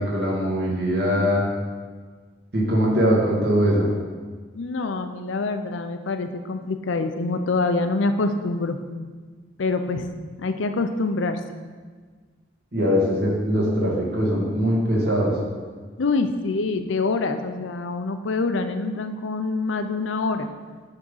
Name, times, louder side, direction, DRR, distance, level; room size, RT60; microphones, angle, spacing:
voice 1, 0.0-1.4 2.5-3.9 12.7-15.3, equal, 60° right, -4 dB, 1.9 m, -21 dB
voice 2, 4.5-8.8 9.6-10.1 10.4-11.4 16.0-20.5, left 3 dB, 90° left, 8 dB, 0.6 m, -25 dB
9.0 x 3.6 x 5.6 m, 1.5 s
head